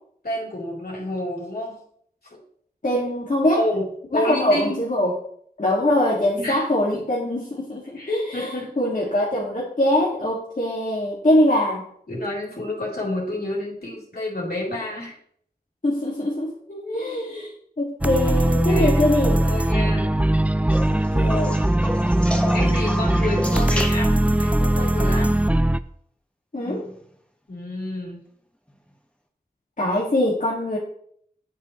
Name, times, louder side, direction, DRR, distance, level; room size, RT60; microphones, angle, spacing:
voice 1, 0.2-1.8 3.6-3.9 4.1-4.8 6.4-6.7 6.9-7.0 7.9-8.7 12.1-15.1 18.7-19.0 19.4-20.1 22.5-25.4 27.5-28.2, left 1 dB, 75° left, -5 dB, 3.8 m, -29 dB
voice 2, 2.8-3.6 4.1-5.1 5.6-8.5 8.8-11.9 15.8-19.4 19.7-20.0 20.9-21.6 26.5-26.8 29.8-30.8, left 1 dB, 55° left, -6 dB, 2.3 m, -23 dB
sound 1, 18.0-25.8, right 1 dB, 10° right, 0.4 m, -20 dB
sound 2, 20.7-24.4 26.5-27.0 28.7-28.8, left 1 dB, 5° left, 1.4 m, -31 dB
8.9 x 8.4 x 3.2 m, 0.64 s
wide cardioid pair, 50°, 16 cm